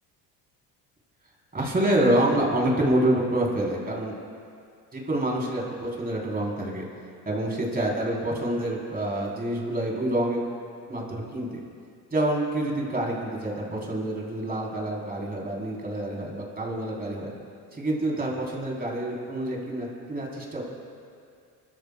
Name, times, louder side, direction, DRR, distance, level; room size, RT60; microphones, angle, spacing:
voice 1, 1.5-4.1 4.9-6.8 7.3-10.4 10.9-11.6 12.1-17.3 17.7-20.6, right 1 dB, 20° right, -3 dB, 3.5 m, -27 dB
27.5 x 13.0 x 2.2 m, 2.3 s
cardioid pair, 115°, 40 cm